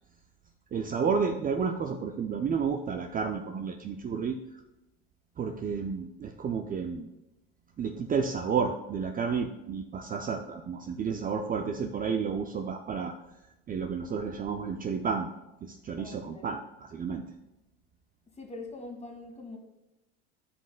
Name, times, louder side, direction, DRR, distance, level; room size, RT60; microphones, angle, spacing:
voice 1, 0.7-4.4 5.4-7.1 7.8-13.2 13.7-15.3 15.6-17.3, right 6 dB, 25° right, 5 dB, 0.5 m, -31 dB
voice 2, 16.0-16.5 18.3-19.6, left 2 dB, 20° left, 2 dB, 1.7 m, -43 dB
12.5 x 5.3 x 2.3 m, 0.97 s
hypercardioid pair, 80°, 32 cm